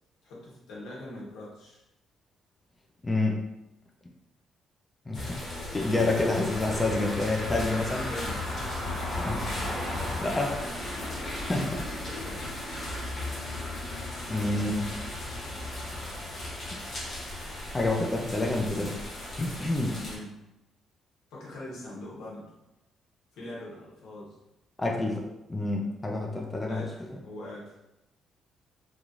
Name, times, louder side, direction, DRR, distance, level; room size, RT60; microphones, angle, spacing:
voice 1, 0.2-1.8 5.9-6.4 8.0-8.4 9.2-9.4 10.6-10.7 12.0-12.4 14.3-14.7 19.9-20.4 21.3-22.5 23.3-24.4 26.7-27.7, left 1 dB, 85° left, -5 dB, 1.0 m, -42 dB
voice 2, 3.0-3.4 5.1-5.4 5.7-8.1 9.2-9.4 10.2-10.5 11.5-11.8 14.3-14.8 17.7-19.0 19.4-20.0 24.8-25.2 25.5-26.9, left 2 dB, 20° left, 0 dB, 0.4 m, -28 dB
sound 1, 5.1-20.2, left 1 dB, 55° left, 1.1 m, -35 dB
3.0 x 2.5 x 2.4 m, 0.91 s
cardioid pair, 90°, 0 cm